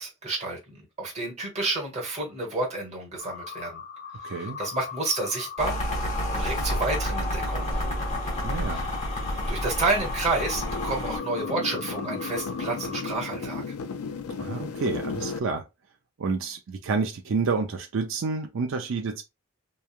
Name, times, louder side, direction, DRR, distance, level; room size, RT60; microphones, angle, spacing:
voice 1, 0.0-3.8 4.2-5.8 6.1-7.9 8.6-9.0 9.5-13.7, right 3 dB, 30° right, 1.1 m, -30 dB
sound 1, 3.2-13.0, left 6 dB, 50° left, 1.0 m, -40 dB
voice 2, 4.2-4.6 8.4-8.9 14.4-15.6 16.2-19.2, right 4 dB, 60° right, 0.4 m, -29 dB
sound 2, 5.6-11.2, equal, 30° left, 0.9 m, -29 dB
sound 3, 10.4-15.4, left 4 dB, 80° left, 0.4 m, -34 dB
3.1 x 2.3 x 2.3 m
head